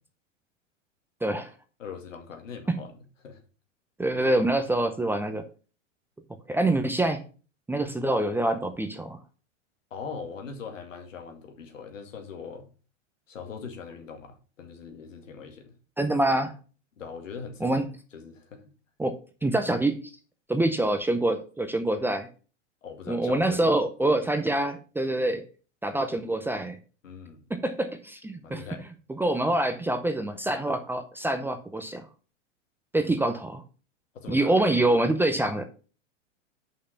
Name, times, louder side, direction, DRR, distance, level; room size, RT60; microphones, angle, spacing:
voice 1, 1.2-1.5 2.7-2.8 4.0-5.4 6.5-7.2 7.7-9.2 16.0-16.5 17.6-17.9 19.0-19.2 19.4-19.9 20.5-22.3 23.1-25.4 25.8-26.8 27.5-28.6 29.1-32.0 32.9-33.6 34.3-35.6, right 1 dB, 5° right, 0.6 m, -25 dB
voice 2, 1.8-3.4 9.9-12.6 13.3-15.8 17.0-17.8 18.1-18.6 22.8-23.7 27.0-27.5 28.4-28.9 34.1-34.5, left 6 dB, 80° left, 2.1 m, -41 dB
6.5 x 5.6 x 5.8 m
hypercardioid pair, 110°, 38 cm